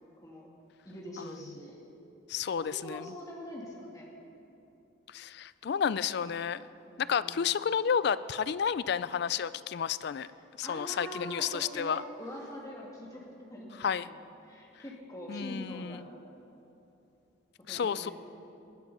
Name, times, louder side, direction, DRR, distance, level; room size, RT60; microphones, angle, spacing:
voice 1, 0.8-1.8 2.6-4.1 6.9-7.5 10.6-13.2 13.5-14.2 14.4-16.1 17.7-18.1, equal, 15° left, -3 dB, 2.3 m, -43 dB
voice 2, 2.3-3.0 5.1-6.6 7.0-10.3 10.6-12.0 13.8-14.1 15.3-16.0 17.7-18.1, left 7 dB, 55° left, 17 dB, 0.3 m, -31 dB
19.5 x 10.5 x 5.4 m, 2.9 s
head